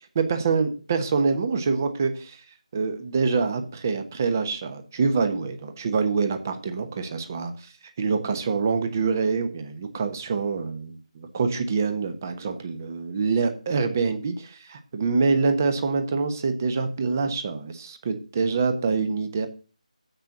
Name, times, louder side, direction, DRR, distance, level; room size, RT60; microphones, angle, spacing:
voice 1, 0.1-2.4 2.7-7.7 8.0-19.5, right 4 dB, 25° right, 8 dB, 1.1 m, -25 dB
7.5 x 6.6 x 6.6 m, 0.36 s
figure-of-eight pair, 170°, 4 cm